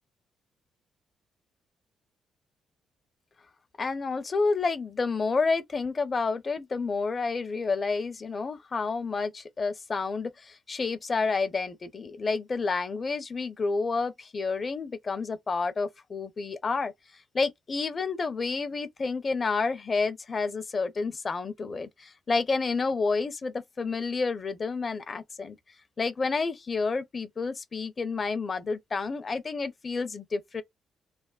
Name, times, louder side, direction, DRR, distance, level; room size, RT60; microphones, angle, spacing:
voice 1, 3.8-16.9 17.3-25.6 26.0-30.6, left 4 dB, 35° left, 0.6 m, -29 dB
3.3 x 2.0 x 2.3 m
cardioid pair, 90°, 0 cm